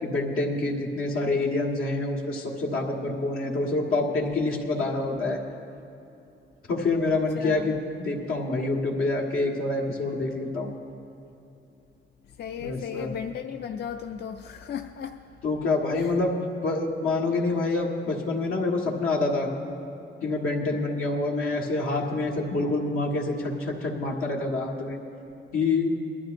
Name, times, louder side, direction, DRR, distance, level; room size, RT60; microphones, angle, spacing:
voice 1, 0.0-5.4 6.7-10.7 12.6-13.1 15.4-19.5 20.2-25.0 25.5-25.9, left 2 dB, 80° left, -1 dB, 1.6 m, -27 dB
voice 2, 7.4-7.7 12.4-15.2 15.9-16.1, left 8 dB, 55° left, 6 dB, 0.4 m, -35 dB
21.0 x 12.0 x 2.6 m, 2.8 s
cardioid pair, 120°, 21 cm